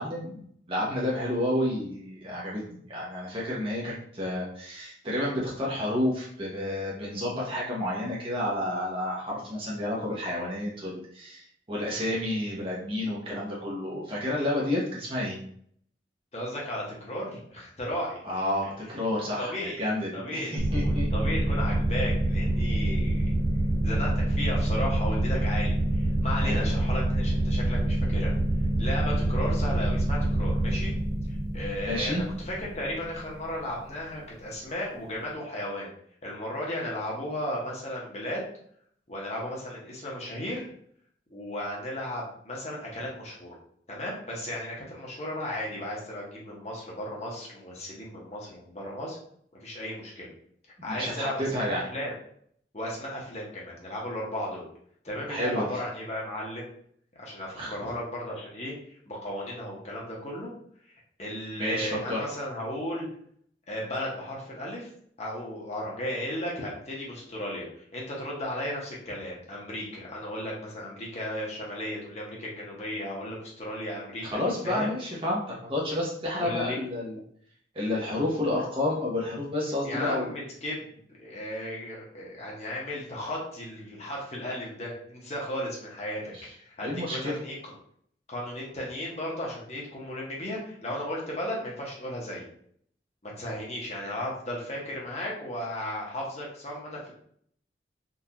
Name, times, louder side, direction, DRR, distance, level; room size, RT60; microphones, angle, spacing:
voice 1, 0.0-15.4 18.2-21.1 26.4-26.8 31.8-32.2 50.8-51.8 55.3-55.6 57.5-57.7 61.6-62.3 74.2-75.4 75.7-77.2 77.7-80.3 86.3-86.5 86.8-87.4, left 1 dB, 30° right, -5 dB, 0.8 m, -30 dB
voice 2, 16.3-18.2 19.4-19.8 20.1-23.3 23.8-28.3 28.8-30.9 31.5-35.9 36.2-38.4 39.1-40.6 41.3-43.5 43.9-49.2 49.6-50.3 50.8-52.1 52.7-54.6 55.0-56.7 57.2-58.7 59.1-60.5 61.2-63.1 63.7-64.9 65.2-67.6 67.9-74.9 76.4-76.8 79.8-87.7 88.3-92.5 93.2-97.1, left 1 dB, 35° left, -4 dB, 1.0 m, -35 dB
sound 1, 20.6-33.8, right 1 dB, 55° right, 0.5 m, -26 dB
3.8 x 2.6 x 2.9 m, 0.64 s
head